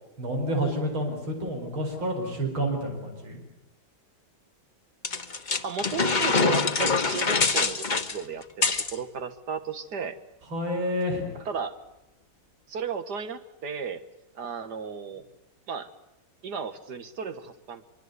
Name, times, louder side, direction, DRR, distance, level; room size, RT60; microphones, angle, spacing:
voice 1, 0.2-3.4 10.5-11.3, equal, 90° right, 2 dB, 5.5 m, -29 dB
sound 1, 5.0-9.0, left 4 dB, 30° left, 1.1 m, -25 dB
voice 2, 5.6-8.6 8.9-10.2 11.5-11.8 12.7-14.0 14.4-15.2 15.7-15.9 16.4-17.9, right 6 dB, 55° right, 10 dB, 1.9 m, -34 dB
24.5 x 24.0 x 8.2 m, 0.94 s
omnidirectional pair, 2.2 m